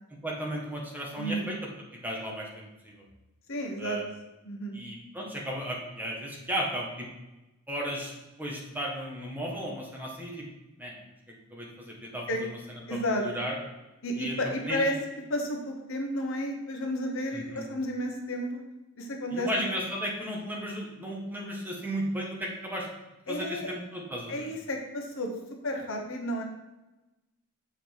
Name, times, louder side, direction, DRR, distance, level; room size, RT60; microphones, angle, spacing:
voice 1, 0.2-1.6 2.0-3.0 3.8-4.1 4.7-7.1 7.7-8.1 8.4-10.5 10.8-11.0 11.5-13.5 14.2-14.4 14.6-15.0 17.3-17.7 19.3-22.9 23.3-24.5, equal, 10° right, -3 dB, 1.4 m, -35 dB
voice 2, 1.2-1.5 3.5-4.0 4.4-4.8 12.3-12.4 12.9-13.2 14.0-14.9 15.3-18.6 19.0-19.5 23.3-23.7 24.3-25.3 25.6-26.4, equal, 65° left, 2 dB, 1.2 m, -32 dB
7.2 x 5.1 x 4.5 m, 1.0 s
head